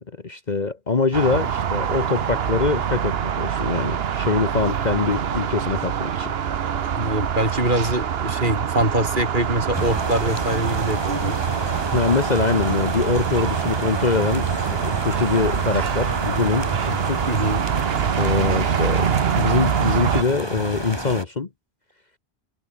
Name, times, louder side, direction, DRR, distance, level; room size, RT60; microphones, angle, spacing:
voice 1, 0.2-6.3 11.9-17.2 18.2-21.5, left 4 dB, 40° left, 1.3 m, -23 dB
sound 1, 1.1-20.2, right 8 dB, 65° right, 1.1 m, -25 dB
voice 2, 7.0-11.4 17.3-17.7, right 1 dB, 45° right, 7.9 m, -24 dB
sound 2, 9.7-21.3, right 1 dB, 20° right, 5.5 m, -31 dB
omnidirectional pair, 1.1 m